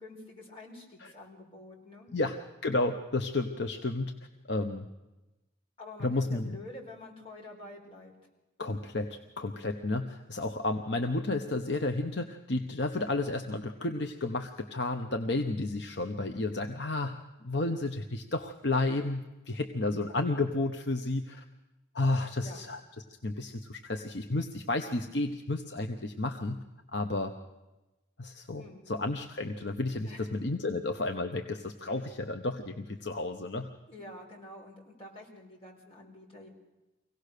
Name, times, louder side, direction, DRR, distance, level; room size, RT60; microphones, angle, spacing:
voice 1, 0.0-2.1 5.8-8.1 19.9-20.1 22.4-22.7 28.6-28.9 30.1-30.3 31.9-32.1 33.9-36.5, left 2 dB, 30° left, -2 dB, 4.7 m, -48 dB
voice 2, 2.1-4.2 4.5-4.9 6.0-6.6 8.6-17.1 17.4-21.4 21.9-22.8 23.2-26.6 26.9-27.3 28.2-33.7, left 2 dB, 55° left, 5 dB, 1.0 m, -32 dB
24.5 x 17.5 x 6.7 m, 1.0 s
head